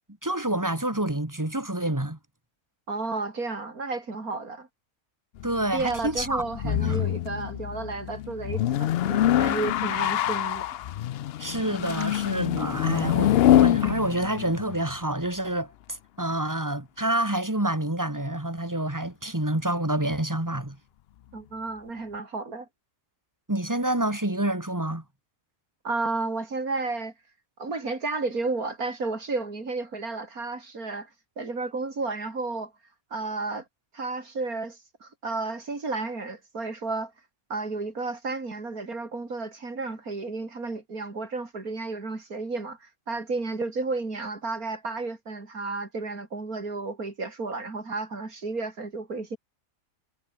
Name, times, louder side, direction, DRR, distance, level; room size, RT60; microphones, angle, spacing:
voice 1, 0.2-2.2 5.4-7.0 11.4-20.8 23.5-25.0, right 1 dB, 10° right, 2.7 m, -28 dB
voice 2, 2.9-4.7 5.7-10.6 21.3-22.7 25.8-27.1 27.6-31.1 31.4-32.7 33.1-33.6 33.9-37.1 37.5-49.4, right 3 dB, 85° right, 4.3 m, -32 dB
sound 1, 5.4-15.0, left 12 dB, 65° left, 0.6 m, -25 dB
omnidirectional pair, 1.5 m